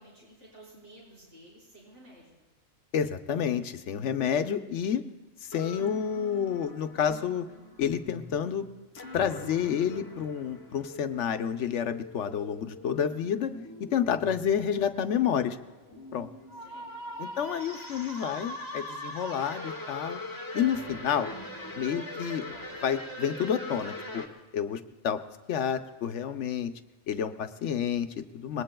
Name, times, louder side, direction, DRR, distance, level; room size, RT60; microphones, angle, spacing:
voice 1, 0.0-2.3 16.5-17.2 18.1-18.6, right 1 dB, 65° right, -7 dB, 5.6 m, -54 dB
voice 2, 2.9-5.0 5.4-7.4 7.8-8.7 9.1-13.5 13.9-15.6 16.1-16.3 17.2-20.2 20.5-21.3 21.8-22.4 22.8-24.2 24.5-25.2 25.5-26.7 27.1-28.6, left 8 dB, 70° left, 9 dB, 1.0 m, -29 dB
sound 1, 5.5-24.3, left 1 dB, 15° left, 1.3 m, -42 dB
25.5 x 20.5 x 2.3 m, 1.1 s
omnidirectional pair, 1.3 m